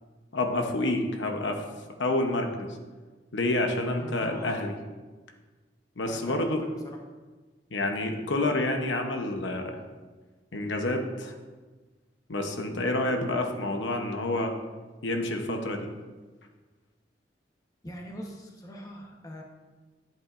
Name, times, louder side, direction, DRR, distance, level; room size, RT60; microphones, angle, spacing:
voice 1, 0.3-1.6 2.0-2.7 3.3-4.7 6.0-6.6 7.7-9.8 10.5-11.3 12.3-14.5 15.0-15.9, left 2 dB, 85° left, 4 dB, 0.9 m, -28 dB
voice 2, 4.0-4.7 6.0-7.0 17.8-19.4, left 1 dB, 20° left, 0 dB, 1.1 m, -42 dB
10.5 x 8.4 x 2.6 m, 1.3 s
head